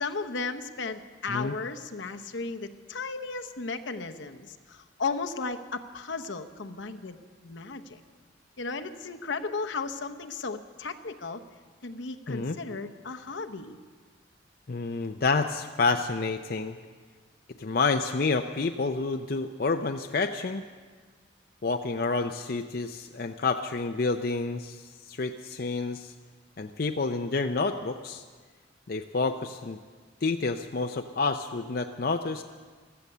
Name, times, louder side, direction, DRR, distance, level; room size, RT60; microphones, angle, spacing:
voice 1, 0.0-7.2 7.4-8.0 8.6-11.4 11.8-13.8, left 4 dB, 75° left, 6 dB, 0.9 m, -35 dB
voice 2, 14.7-16.8 17.6-20.6 21.6-26.1 26.6-28.2 28.9-29.8 30.2-32.4, left 3 dB, 50° left, 6 dB, 0.5 m, -29 dB
15.5 x 14.0 x 6.7 m, 1.5 s
head